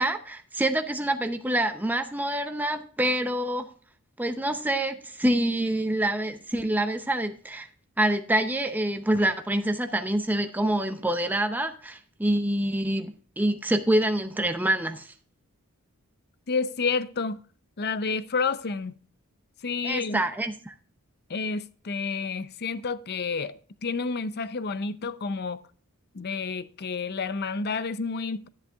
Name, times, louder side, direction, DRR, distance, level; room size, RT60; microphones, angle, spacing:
voice 1, 0.0-3.7 4.2-7.7 8.0-15.1 19.8-20.7, right 1 dB, 10° right, 0.6 m, -26 dB
voice 2, 16.5-17.4 17.8-18.9 19.6-20.2 21.3-25.6 26.1-28.5, left 4 dB, 45° left, 0.6 m, -30 dB
10.5 x 10.5 x 2.3 m
head